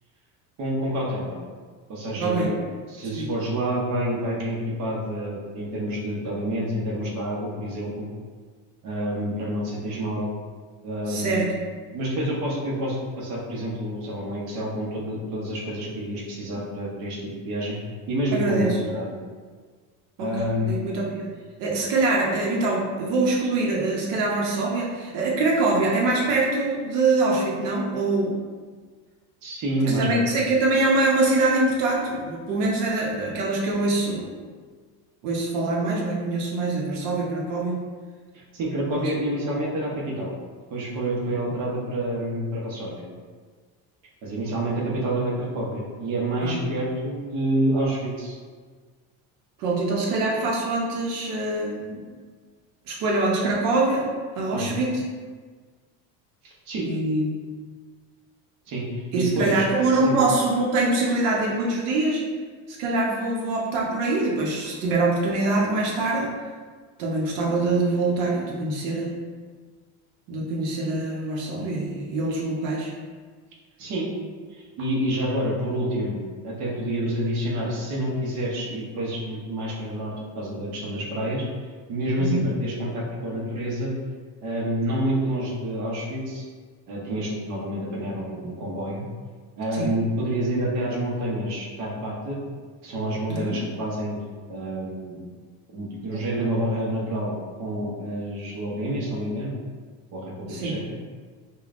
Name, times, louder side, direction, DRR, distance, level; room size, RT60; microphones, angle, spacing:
voice 1, 0.6-1.4 1.9-8.1 8.8-10.3 10.8-11.5 11.9-17.2 17.4-17.8 18.1-19.1 20.2-20.8 29.4-30.2 38.3-40.3 40.7-43.1 44.2-48.4 54.5-54.8 56.4-56.9 58.7-60.1 73.8-74.1 74.5-81.4 81.9-83.9 84.4-86.4 86.9-89.0 89.6-92.4 92.8-94.2 94.5-95.2 95.7-97.3 97.6-99.5 100.1-101.0, right 1 dB, 45° right, -5 dB, 0.8 m, -28 dB
voice 2, 11.1-11.6 18.3-18.8 20.2-20.3 20.7-21.2 21.6-28.3 30.0-34.3 35.2-37.8 38.9-39.1 46.4-46.6 49.6-52.0 52.9-54.1 54.3-55.0 56.9-57.3 59.1-62.2 62.7-66.3 67.0-69.2 70.3-72.9 82.2-82.4 89.8-89.9 93.3-93.6 100.5-100.8, right 2 dB, 75° right, -3 dB, 0.8 m, -24 dB
5.1 x 2.3 x 2.4 m, 1.5 s
cardioid pair, 175°, 41 cm